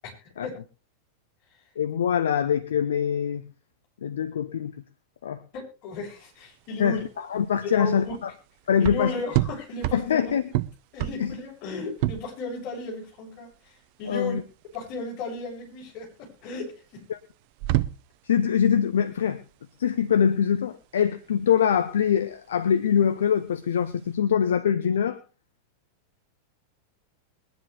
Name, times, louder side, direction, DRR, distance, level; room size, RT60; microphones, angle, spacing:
voice 1, 0.0-0.6 5.5-7.0 7.6-8.1 8.8-10.3 10.9-14.4 14.7-17.0, left 3 dB, 40° left, -1 dB, 7.6 m, -35 dB
voice 2, 1.8-3.4 4.0-4.7 5.2-5.4 6.8-7.0 7.3-8.3 8.7-9.1 9.9-10.4 11.2-11.3 14.1-14.4 17.1-17.2 18.3-19.4 19.8-25.2, left 8 dB, 65° left, 11 dB, 0.9 m, -23 dB
sound 1, 5.9-24.1, right 16 dB, 45° right, 0.7 m, -33 dB
22.0 x 10.5 x 3.4 m, 0.34 s
figure-of-eight pair, 90°, 0 cm